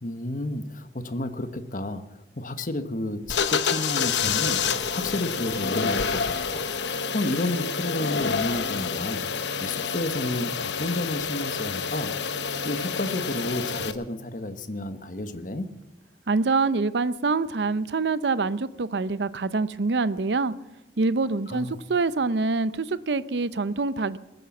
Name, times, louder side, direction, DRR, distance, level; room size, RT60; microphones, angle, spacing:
voice 1, 0.0-2.0 2.4-4.6 4.9-6.6 6.9-9.2 9.6-12.1 12.6-15.7 21.5-21.7, left 1 dB, 50° left, 10 dB, 1.1 m, -31 dB
sound 1, 3.3-13.9, left 6 dB, 85° left, 0.9 m, -28 dB
voice 2, 16.3-20.5 21.0-24.2, right 3 dB, 75° right, 16 dB, 0.6 m, -25 dB
20.5 x 9.2 x 7.1 m, 0.95 s
head